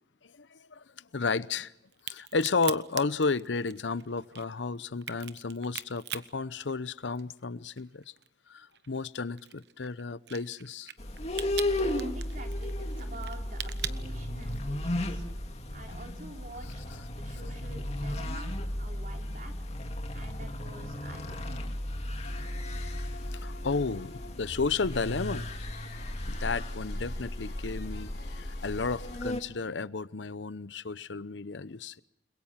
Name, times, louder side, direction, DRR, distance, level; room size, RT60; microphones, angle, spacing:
voice 1, 0.3-1.7 2.0-8.0 8.5-10.9 23.3-25.5 26.3-32.0, left 4 dB, 85° left, 0.8 m, -33 dB
Crack, 1.9-7.4 7.8-14.8, right 11 dB, 70° right, 1.1 m, -41 dB
sound 1, 11.0-29.4, left 1 dB, 35° left, 2.3 m, -35 dB
voice 2, 11.8-15.3 15.7-19.5 20.1-21.7, right 2 dB, 45° right, 3.4 m, -48 dB
sound 2, 22.2-29.2, left 3 dB, 65° left, 4.0 m, -50 dB
30.0 x 22.0 x 5.8 m
head